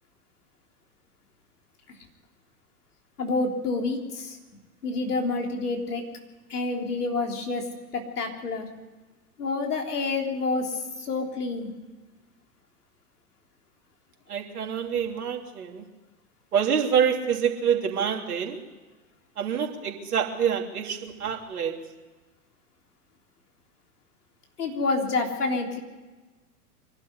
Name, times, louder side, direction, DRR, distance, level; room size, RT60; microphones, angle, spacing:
voice 1, 3.2-4.4 4.8-6.0 6.5-7.7 7.9-8.7 9.4-11.7 24.6-25.8, left 3 dB, 75° left, 2 dB, 3.8 m, -28 dB
voice 2, 14.3-15.8 16.5-18.6 19.4-21.8, right 8 dB, 70° right, 2 dB, 3.3 m, -26 dB
25.0 x 12.0 x 9.8 m, 1.2 s
figure-of-eight pair, 100°, 46 cm